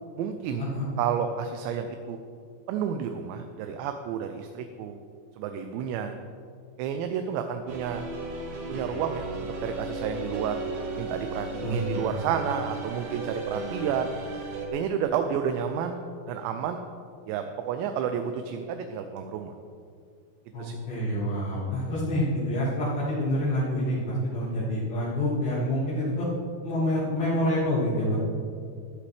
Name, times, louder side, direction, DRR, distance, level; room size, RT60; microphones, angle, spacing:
voice 1, 0.2-0.7 1.0-2.2 2.7-5.0 5.4-6.1 6.8-8.0 8.7-10.6 11.0-14.2 14.7-16.8 17.3-19.5 20.6-20.8, right 8 dB, 85° right, 6 dB, 2.8 m, -31 dB
sound 1, 7.7-14.7, right 2 dB, 60° right, 2.6 m, -35 dB
voice 2, 20.5-26.3 26.6-28.2, left 1 dB, 60° left, -10 dB, 3.8 m, -27 dB
15.5 x 11.0 x 3.4 m, 2.2 s
omnidirectional pair, 5.1 m